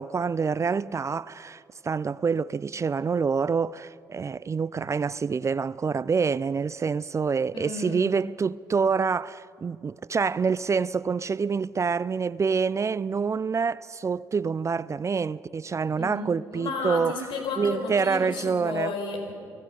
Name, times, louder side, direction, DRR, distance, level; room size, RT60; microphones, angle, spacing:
voice 1, 0.0-17.1 17.6-18.9, right 5 dB, 35° right, 0.4 m, -27 dB
voice 2, 7.5-8.1 16.0-19.3, left 4 dB, 65° left, 4.5 m, -33 dB
28.5 x 17.5 x 5.4 m
hypercardioid pair, 55°, 9 cm